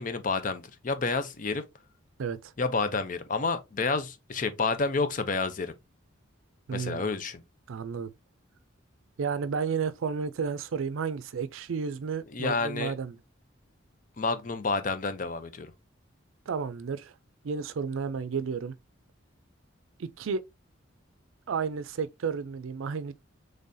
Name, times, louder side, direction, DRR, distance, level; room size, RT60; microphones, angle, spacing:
voice 1, 0.0-1.6 2.6-5.7 6.7-7.4 12.3-12.9 14.2-15.7, left 4 dB, 40° left, 0.5 m, -29 dB
voice 2, 2.2-2.5 6.7-7.1 7.7-8.1 9.2-13.1 16.5-17.1 17.4-18.8 20.0-20.5 21.5-23.1, right 6 dB, 85° right, 0.4 m, -32 dB
3.8 x 3.3 x 2.6 m
head